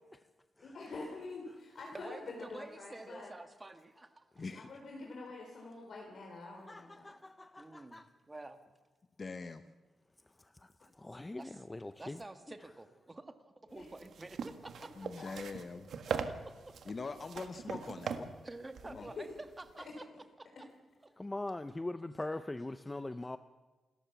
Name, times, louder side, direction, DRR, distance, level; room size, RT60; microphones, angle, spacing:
voice 1, 0.6-3.3 4.5-7.1 13.6-13.9 14.8-14.9 15.2-15.3 18.9-19.3 19.8-20.0, left 3 dB, 60° left, 0 dB, 4.2 m, -46 dB
voice 2, 1.9-4.4 7.6-8.6 11.4-11.6 12.0-15.1 16.0-16.7 18.4-19.3 19.6-20.0 20.4-20.7 21.0-21.1, right 2 dB, 20° right, 8 dB, 1.7 m, -49 dB
voice 3, 4.4-4.7 9.2-9.7 15.0-15.9 16.8-18.3 18.8-19.1, left 4 dB, 40° left, 9 dB, 1.0 m, -43 dB
voice 4, 6.7-8.1 10.6-12.2 21.2-23.4, left 2 dB, 15° left, 11 dB, 0.6 m, -42 dB
sound 1, 13.8-19.8, right 6 dB, 70° right, 1.6 m, -41 dB
27.5 x 13.5 x 7.0 m, 1.3 s
cardioid pair, 100°, 0 cm